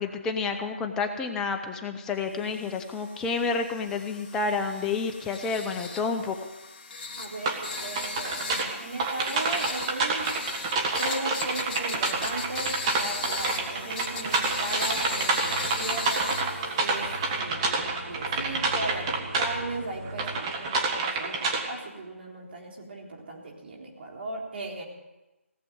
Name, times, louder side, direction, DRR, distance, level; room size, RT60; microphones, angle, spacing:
voice 1, 0.0-6.4, left 4 dB, 10° left, 5 dB, 0.6 m, -29 dB
sound 1, 2.5-17.4, left 4 dB, 35° left, 1.7 m, -38 dB
voice 2, 7.2-10.3 11.0-16.4 16.8-24.8, right 2 dB, 50° right, 0 dB, 3.7 m, -37 dB
sound 2, 7.4-19.5 20.1-21.8, right 3 dB, 25° right, 1.7 m, -28 dB
sound 3, 10.3-20.4, right 1 dB, 85° right, 4.2 m, -44 dB
17.5 x 7.7 x 9.4 m, 1.0 s
figure-of-eight pair, 160°, 8 cm